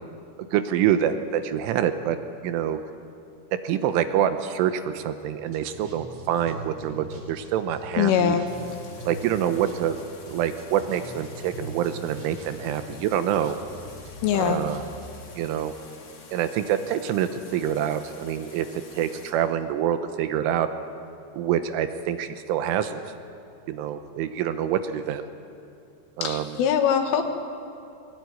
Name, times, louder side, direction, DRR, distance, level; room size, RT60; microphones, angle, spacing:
voice 1, 0.5-2.2 2.4-2.8 3.6-8.4 9.1-10.0 10.3-13.6 14.4-14.8 15.4-15.7 16.3-18.7 19.0-20.7 21.3-23.0 23.7-25.2 26.2-26.5, right 10 dB, 80° right, 9 dB, 3.4 m, -26 dB
sound 1, 5.4-15.3, right 1 dB, 50° right, 6.4 m, -42 dB
voice 2, 8.0-8.4 14.2-14.6 26.2-27.2, left 8 dB, 75° left, 5 dB, 4.1 m, -22 dB
sound 2, 8.5-19.3, left 3 dB, 40° left, 3.5 m, -48 dB
22.5 x 19.5 x 9.7 m, 2.7 s
omnidirectional pair, 5.8 m